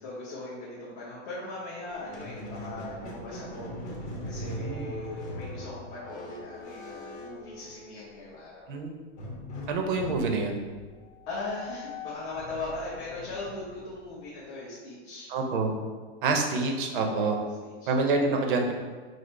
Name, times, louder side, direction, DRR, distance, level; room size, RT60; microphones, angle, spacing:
voice 1, 0.0-8.8 11.3-15.3 16.9-17.9, left 2 dB, 35° left, -8 dB, 0.9 m, -39 dB
Squeak, 1.9-8.2 9.2-14.3, left 1 dB, 75° left, 1.2 m, -41 dB
voice 2, 9.7-10.6 15.3-15.7 16.2-17.3 17.9-18.7, right 3 dB, 50° right, 3 dB, 0.6 m, -27 dB
5.1 x 2.0 x 4.2 m, 1.5 s
supercardioid pair, 170°, 35 cm